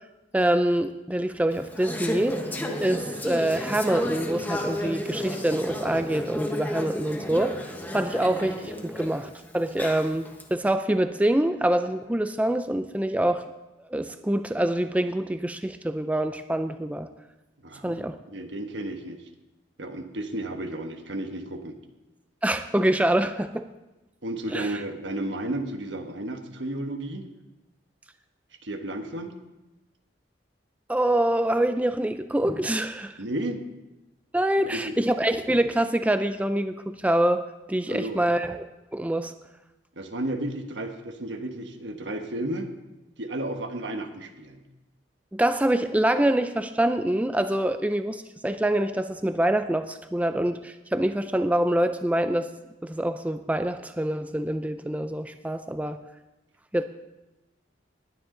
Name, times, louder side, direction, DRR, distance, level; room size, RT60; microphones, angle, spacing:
voice 1, 0.3-2.5 2.8-7.5 7.9-10.3 10.5-13.4 13.9-17.1 17.8-18.2 22.4-23.7 24.5-24.7 30.9-33.2 34.3-37.4 37.7-38.7 38.9-39.3 45.3-52.5 52.8-56.0 56.7-56.8, right 1 dB, 10° right, 9 dB, 0.4 m, -25 dB
Conversation / Chatter, 1.5-10.4, left 1 dB, 10° left, 1.2 m, -33 dB
voice 2, 17.6-18.0 18.3-19.3 19.8-21.8 24.2-27.2 28.6-29.3 33.2-33.6 34.6-35.1 37.9-38.2 40.0-42.7 43.2-44.6, right 1 dB, 75° right, 5 dB, 1.3 m, -33 dB
19.5 x 9.6 x 3.9 m, 1.0 s
head